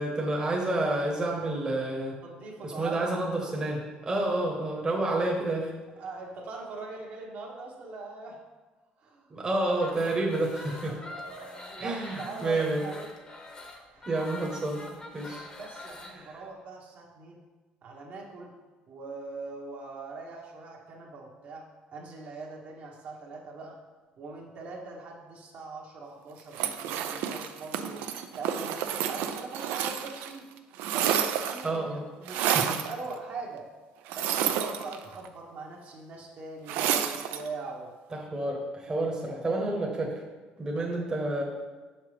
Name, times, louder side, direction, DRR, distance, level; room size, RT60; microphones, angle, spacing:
voice 1, 0.0-2.2 2.6-3.8 4.1-5.7 9.3-11.0 11.8-12.8 14.1-14.9 15.1-15.5 16.1-16.4 31.6-32.0 32.4-32.8 38.1-40.1 40.6-41.4, right 2 dB, 20° right, -2 dB, 1.0 m, -29 dB
voice 2, 2.2-3.1 3.4-3.6 6.0-8.4 9.0-9.3 10.9-13.1 13.9-14.1 15.6-17.4 17.8-18.5 18.9-23.8 24.2-28.1 28.4-30.4 30.9-33.6 34.1-37.9 38.9-39.1 40.7-40.9, right 3 dB, 55° right, -1 dB, 1.2 m, -42 dB
sound 1, 9.7-16.1, left 2 dB, 25° left, 0.8 m, -45 dB
sound 2, 26.5-30.3 30.6-31.8 32.3-32.9 34.1-35.3 36.7-37.5, right 9 dB, 90° right, 0.4 m, -29 dB
6.5 x 5.7 x 3.3 m, 1.3 s
cardioid pair, 125°, 3 cm